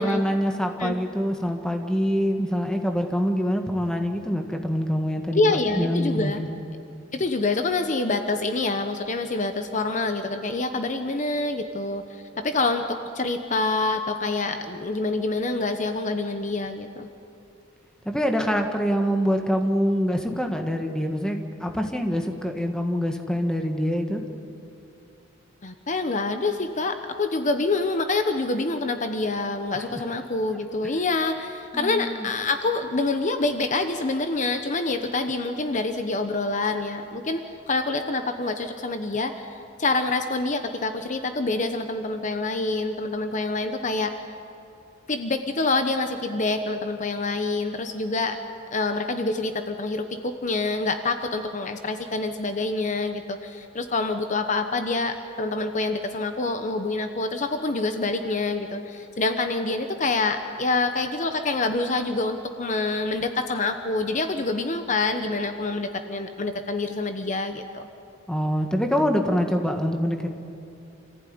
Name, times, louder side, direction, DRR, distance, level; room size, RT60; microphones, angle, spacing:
voice 1, 0.0-6.6 18.1-24.2 29.8-30.0 31.7-32.3 68.3-70.3, equal, 5° left, 4 dB, 1.7 m, -25 dB
voice 2, 5.3-6.4 7.1-17.1 25.6-39.5 39.8-44.1 45.1-48.4 48.7-67.9, left 3 dB, 40° left, 7 dB, 1.0 m, -26 dB
26.5 x 15.0 x 9.5 m, 2.7 s
head